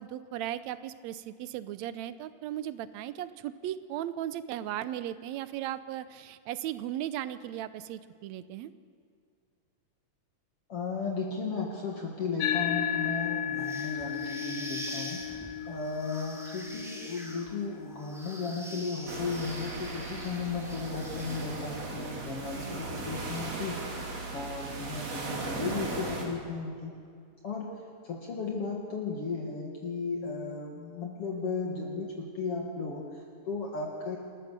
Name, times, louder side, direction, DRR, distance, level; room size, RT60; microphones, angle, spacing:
voice 1, 0.0-8.7 22.6-22.9, right 12 dB, 75° right, 14 dB, 1.8 m, -37 dB
voice 2, 10.7-24.0 24.3-26.9 27.4-34.2, left 4 dB, 50° left, -1 dB, 2.6 m, -35 dB
sound 1, 12.4-21.1, left 9 dB, 85° left, 2.5 m, -36 dB
sound 2, 13.6-21.9, equal, ahead, 2.5 m, -45 dB
sound 3, 19.1-26.3, right 3 dB, 55° right, 4.0 m, -37 dB
28.0 x 14.0 x 6.7 m, 2.2 s
omnidirectional pair, 3.6 m